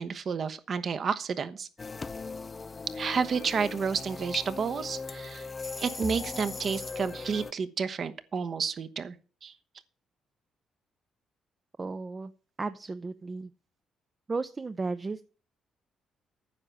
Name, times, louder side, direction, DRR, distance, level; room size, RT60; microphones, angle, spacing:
voice 1, 0.0-1.7 2.9-5.5 5.8-9.1 9.4-9.5, right 6 dB, 50° right, 11 dB, 1.1 m, -31 dB
sound 1, 1.8-7.5, left 4 dB, 30° left, 0.4 m, -39 dB
voice 2, 11.8-12.3 12.6-13.5 14.3-15.2, right 3 dB, 30° right, 11 dB, 0.6 m, -34 dB
9.8 x 6.8 x 7.4 m, 0.37 s
cardioid pair, 90°, 0 cm